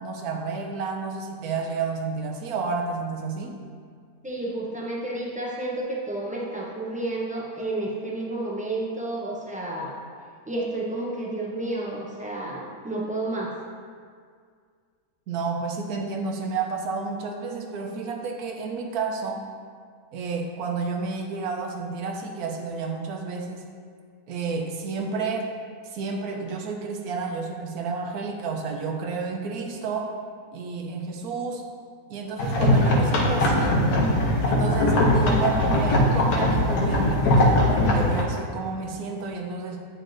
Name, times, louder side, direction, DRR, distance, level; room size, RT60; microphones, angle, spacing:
voice 1, 0.0-3.6 15.3-19.4 20.1-23.6 24.3-25.5 25.9-30.1 30.5-31.6 32.1-33.8 34.4-39.8, right 4 dB, 80° right, 2 dB, 1.2 m, -30 dB
voice 2, 4.2-10.0 10.5-13.5, right 2 dB, 10° right, -4 dB, 0.4 m, -31 dB
sound 1, 32.4-38.2, left 1 dB, 85° left, 1.3 m, -20 dB
9.1 x 4.4 x 2.6 m, 2.1 s
omnidirectional pair, 1.6 m